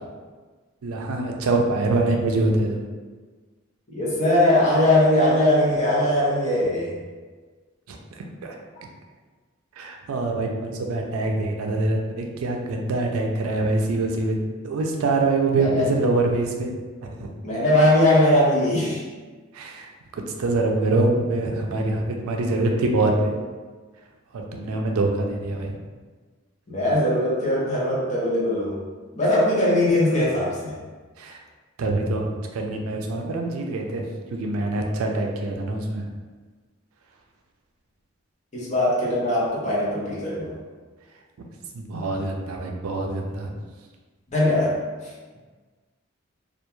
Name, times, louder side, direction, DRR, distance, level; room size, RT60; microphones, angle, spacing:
voice 1, 0.8-2.8 7.9-8.0 8.4-8.6 9.8-14.4 14.6-16.7 17.0-17.3 19.5-23.3 24.5-25.8 31.2-31.4 31.8-36.1 41.7-43.5, right 2 dB, 85° right, 2 dB, 0.4 m, -24 dB
voice 2, 3.9-6.9 15.5-15.9 17.4-19.0 21.7-21.8 26.7-28.8 29.1-30.8 38.5-40.5 44.3-45.1, left 1 dB, 35° left, -7 dB, 0.7 m, -20 dB
2.3 x 2.2 x 3.0 m, 1.4 s
head